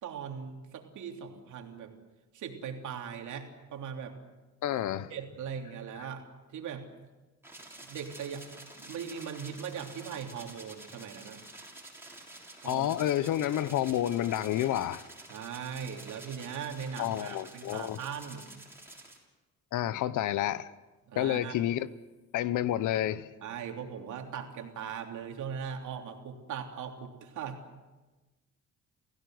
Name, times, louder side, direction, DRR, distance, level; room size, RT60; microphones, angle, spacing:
voice 1, 0.0-1.9 2.3-4.1 5.1-6.2 6.5-6.9 7.8-8.5 8.8-11.4 12.6-12.9 15.3-18.5 21.1-21.6 23.4-27.6, right 7 dB, 75° right, 3.4 m, -39 dB
voice 2, 4.6-5.1 12.6-15.0 17.0-18.0 19.7-20.7 21.2-21.9 22.3-23.3, left 12 dB, 80° left, 1.0 m, -29 dB
sound 1, 7.4-19.2, right 2 dB, 10° right, 6.5 m, -49 dB
27.5 x 16.5 x 7.9 m
cardioid pair, 90°, 30 cm